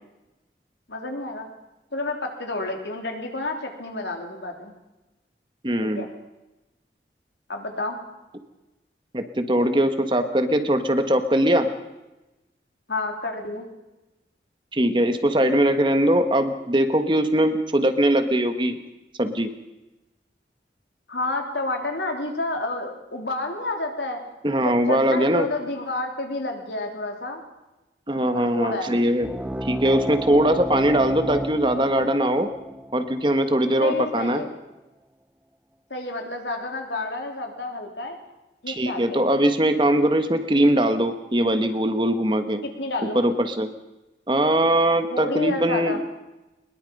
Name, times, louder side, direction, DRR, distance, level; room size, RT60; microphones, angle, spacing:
voice 1, 0.9-1.5 1.9-4.7 5.8-6.1 7.5-8.0 12.9-13.7 21.1-24.2 24.6-27.4 28.3-28.9 33.7-34.5 35.9-38.2 38.6-39.2 42.6-43.2 45.1-46.0, left 2 dB, 90° left, 3 dB, 3.7 m, -30 dB
voice 2, 5.6-6.1 9.1-11.7 14.7-18.8 19.2-19.5 24.4-25.5 28.1-29.3 29.6-32.5 32.9-34.4 38.7-42.6 43.1-43.7 44.3-46.0, right 1 dB, 25° right, 8 dB, 1.4 m, -21 dB
sound 1, 29.2-34.3, right 1 dB, 10° right, 0.6 m, -33 dB
22.0 x 21.5 x 5.5 m, 1.0 s
head